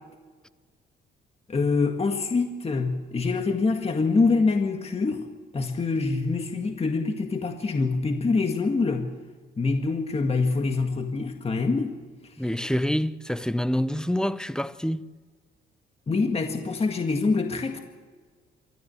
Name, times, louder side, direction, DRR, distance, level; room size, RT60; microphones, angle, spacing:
voice 1, 1.5-5.3 5.5-9.1 9.6-11.9 16.1-17.8, left 4 dB, 30° left, 1.8 m, -25 dB
voice 2, 12.4-15.1, equal, 5° left, 0.7 m, -27 dB
25.0 x 13.5 x 7.8 m
cardioid pair, 90°, 20 cm